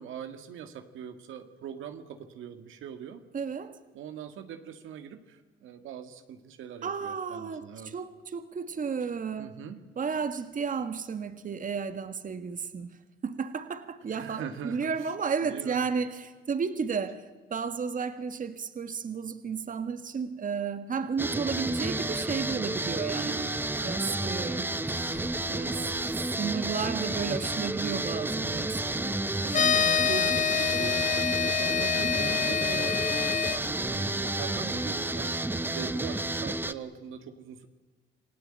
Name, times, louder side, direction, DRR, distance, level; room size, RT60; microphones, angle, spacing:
voice 1, 0.0-3.2 3.9-7.9 9.4-9.8 14.1-15.1 15.4-15.9 23.2-23.5 29.0-35.4 35.7-37.7, right 8 dB, 85° right, 8 dB, 1.8 m, -42 dB
voice 2, 3.3-3.7 6.8-9.5 10.0-13.0 13.2-17.2 17.5-28.8, right 6 dB, 40° right, 10 dB, 1.6 m, -33 dB
sound 1, 21.2-36.7, right 2 dB, 10° right, 1.0 m, -31 dB
sound 2, 25.0-34.6, left 5 dB, 65° left, 4.4 m, -54 dB
sound 3, 29.5-33.6, left 8 dB, 40° left, 0.8 m, -26 dB
28.0 x 17.0 x 8.8 m, 1.3 s
cardioid pair, 90°, 20 cm